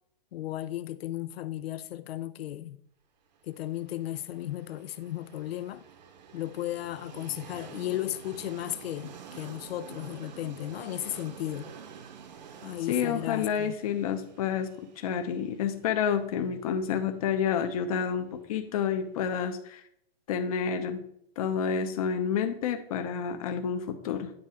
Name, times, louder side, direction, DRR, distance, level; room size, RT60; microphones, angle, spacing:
voice 1, 0.3-2.8 3.4-5.8 6.3-11.7 12.6-13.8, left 13 dB, 80° left, 0.5 m, -35 dB
Train, 3.5-19.4, right 7 dB, 45° right, 0.9 m, -49 dB
voice 2, 12.9-19.8 20.3-21.0 21.4-24.3, left 7 dB, 35° left, 0.8 m, -29 dB
9.3 x 3.6 x 5.7 m
hypercardioid pair, 170°, 30 cm